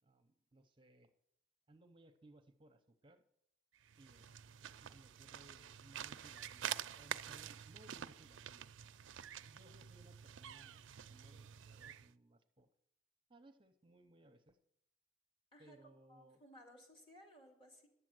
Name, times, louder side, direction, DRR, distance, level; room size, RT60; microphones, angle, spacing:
voice 1, 0.0-1.1 1.7-3.2 4.0-4.3 4.6-8.7 9.4-12.7 13.3-14.6 15.6-16.4, right 1 dB, 25° right, 7 dB, 0.7 m, -64 dB
sound 1, 3.8-12.1, right 9 dB, 70° right, 0.4 m, -48 dB
voice 2, 15.5-15.8 16.1-17.9, equal, 25° left, -1 dB, 2.4 m, -60 dB
11.0 x 7.6 x 7.7 m, 0.75 s
head